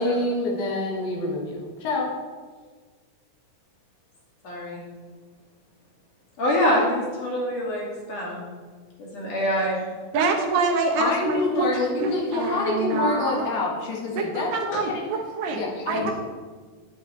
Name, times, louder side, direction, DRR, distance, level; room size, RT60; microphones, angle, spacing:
voice 1, 0.0-2.1 11.0-15.1 15.5-16.1, left 2 dB, 85° left, -2 dB, 3.9 m, -26 dB
voice 2, 4.4-4.8 6.4-8.4 9.0-9.8 14.7-14.8 15.9-16.1, equal, 45° left, -4 dB, 3.3 m, -25 dB
voice 3, 10.1-11.7 12.0-13.5 14.2-16.1, right 4 dB, 70° right, 3 dB, 2.6 m, -26 dB
10.0 x 9.8 x 4.2 m, 1.5 s
omnidirectional pair, 4.3 m